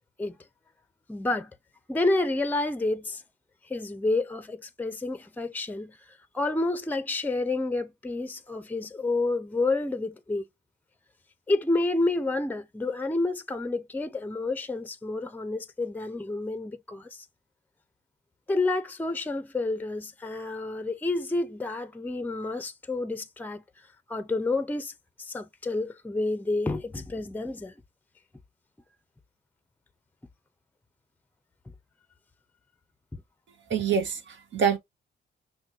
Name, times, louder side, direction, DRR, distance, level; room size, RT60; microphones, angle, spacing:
voice 1, 1.1-1.5 1.9-3.2 3.7-6.0 6.3-10.5 11.5-17.3 18.5-23.6 24.1-24.9 25.2-27.7 33.1-33.2, left 2 dB, 10° left, 0.6 m, -29 dB
voice 2, 33.7-34.8, right 7 dB, 70° right, 1.3 m, -25 dB
6.1 x 2.2 x 3.8 m
cardioid pair, 90°, 20 cm